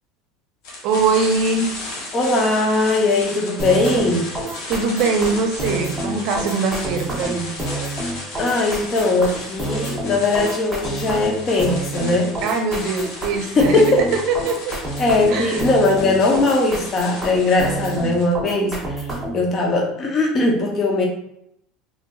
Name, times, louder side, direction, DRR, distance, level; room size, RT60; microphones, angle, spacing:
sound 1, 0.6-18.3, left 2 dB, 70° left, 1.0 m, -35 dB
voice 1, 0.8-1.7 4.7-7.5 12.4-14.6 15.3-15.6, right 4 dB, 60° right, 4 dB, 0.6 m, -22 dB
voice 2, 2.1-4.3 8.4-12.3 13.5-14.0 15.0-21.0, left 2 dB, 35° left, 0 dB, 0.7 m, -19 dB
sound 2, 3.6-19.5, right 1 dB, 5° right, 1.0 m, -28 dB
3.2 x 2.9 x 2.3 m, 0.75 s
supercardioid pair, 125°, 0 cm